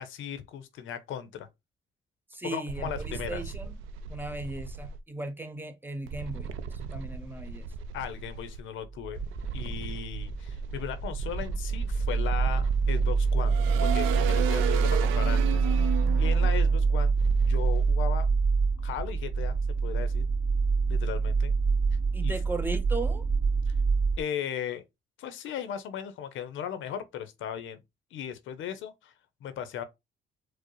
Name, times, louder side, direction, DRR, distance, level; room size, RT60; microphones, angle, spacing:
voice 1, 0.0-1.5 2.4-3.5 7.9-9.2 9.5-18.3 18.8-20.2 20.9-21.6 22.2-22.3 23.7-23.8 24.2-24.8 25.2-27.8 28.1-29.1 29.4-29.8, left 9 dB, 80° left, 0.6 m, -37 dB
voice 2, 2.3-3.8 4.1-6.5 6.8-7.7 22.1-23.2, right 2 dB, 10° right, 0.6 m, -37 dB
sound 1, 2.7-5.0 6.1-8.6 9.1-17.9, right 7 dB, 90° right, 0.4 m, -36 dB
sound 2, 8.8-24.2, right 4 dB, 55° right, 2.0 m, -26 dB
4.7 x 2.1 x 3.0 m
cardioid pair, 90°, 20 cm